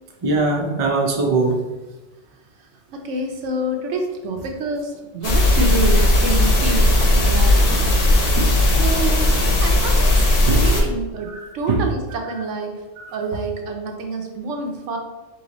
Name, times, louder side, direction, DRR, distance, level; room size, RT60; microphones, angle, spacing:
voice 1, 0.2-1.6 8.3-8.5 10.5-10.6 11.3-11.9 13.0-13.1, right 3 dB, 40° right, 2 dB, 0.4 m, -21 dB
voice 2, 2.9-7.7 8.8-9.3 9.6-10.2 10.6-12.8 13.1-15.0, right 2 dB, 85° right, 3 dB, 1.0 m, -27 dB
sound 1, 5.2-10.8, left 1 dB, 55° left, 0.9 m, -16 dB
3.5 x 3.1 x 3.9 m, 1.1 s
omnidirectional pair, 1.2 m